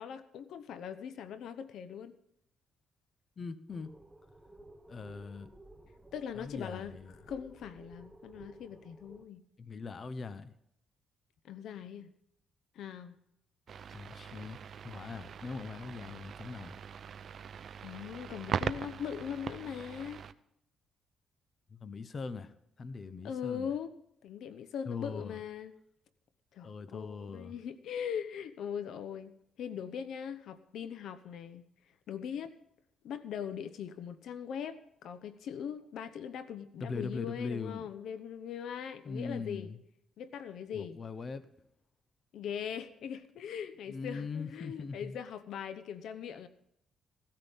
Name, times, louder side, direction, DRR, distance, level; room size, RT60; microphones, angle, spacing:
voice 1, 0.0-2.2 6.1-6.9 7.3-9.4 11.4-12.1 12.7-13.2 17.8-20.2 23.2-23.9 24.2-25.7 26.5-29.3 29.6-31.6 32.1-32.5 33.0-39.7 40.2-41.0 42.3-46.5, left 8 dB, 75° left, 12 dB, 0.8 m, -40 dB
voice 2, 3.4-3.9 4.9-5.5 6.3-7.2 9.6-10.5 13.9-14.6 14.8-16.8 21.7-23.7 24.9-25.4 26.6-27.5 36.8-37.8 39.0-39.8 40.7-41.5 43.9-45.1, left 4 dB, 40° left, 13 dB, 0.9 m, -41 dB
sound 1, 3.7-9.3, right 1 dB, 5° right, 1.2 m, -55 dB
sound 2, 13.7-20.3, right 7 dB, 55° right, 0.6 m, -41 dB
17.0 x 13.5 x 3.6 m, 0.76 s
cardioid pair, 90°, 0 cm